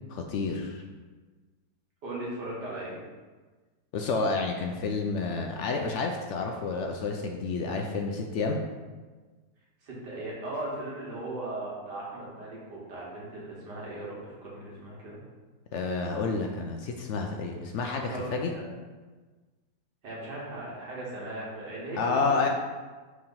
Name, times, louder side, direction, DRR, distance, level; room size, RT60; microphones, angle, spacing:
voice 1, 0.1-0.8 3.9-8.6 15.7-18.5 22.0-22.5, left 4 dB, 75° left, 2 dB, 0.6 m, -30 dB
voice 2, 2.0-3.0 9.8-15.2 18.1-18.6 20.0-22.4, right 1 dB, 85° right, -5 dB, 2.2 m, -38 dB
4.8 x 3.5 x 5.6 m, 1.3 s
omnidirectional pair, 1.8 m